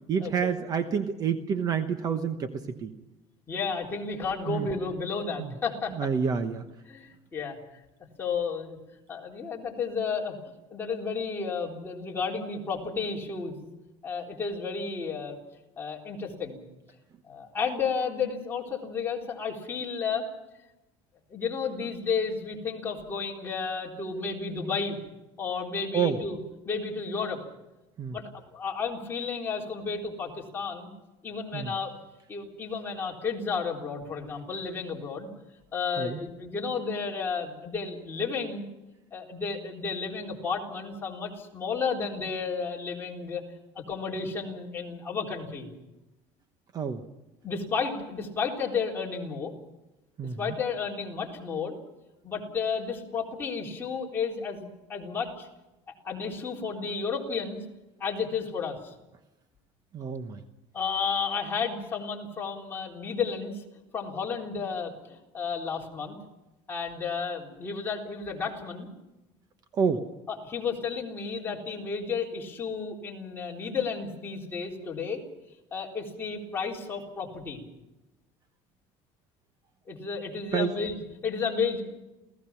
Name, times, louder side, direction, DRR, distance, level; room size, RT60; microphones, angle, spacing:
voice 1, 0.1-2.9 4.5-4.7 5.4-5.5 5.9-6.6 25.9-26.2 28.0-28.2 31.5-31.7 36.0-36.2 46.7-47.0 50.2-50.6 59.9-60.4 69.7-70.1 80.5-80.7, right 6 dB, 30° right, 8 dB, 1.1 m, -28 dB
voice 2, 3.5-6.0 6.9-7.8 8.2-8.8 9.1-10.4 10.7-13.7 14.0-15.4 15.8-16.6 17.3-20.3 21.3-25.0 25.4-26.4 26.6-27.4 28.1-30.9 31.2-32.0 32.3-35.3 35.7-38.7 39.1-43.4 43.9-45.7 47.4-49.5 50.4-51.8 52.2-55.5 55.9-57.6 58.0-58.9 60.7-63.6 63.9-66.2 66.7-68.9 70.3-75.2 75.7-77.6 79.9-81.8, left 5 dB, 20° left, -2 dB, 3.9 m, -32 dB
28.5 x 17.5 x 5.9 m, 0.98 s
cardioid pair, 160°, 12 cm